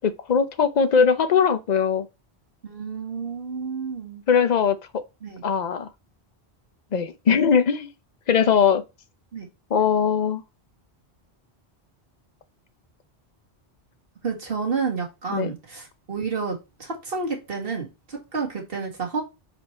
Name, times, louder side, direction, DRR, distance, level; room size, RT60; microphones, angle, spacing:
voice 1, 0.0-2.1 4.3-5.0 5.4-5.9 6.9-7.9 8.3-8.8 9.7-10.4 15.3-15.5, left 6 dB, 45° left, 0.8 m, -20 dB
voice 2, 2.6-4.2 5.2-5.4 9.3-9.5 14.2-19.2, right 5 dB, 60° right, 2.1 m, -30 dB
5.1 x 4.5 x 4.3 m
omnidirectional pair, 1.1 m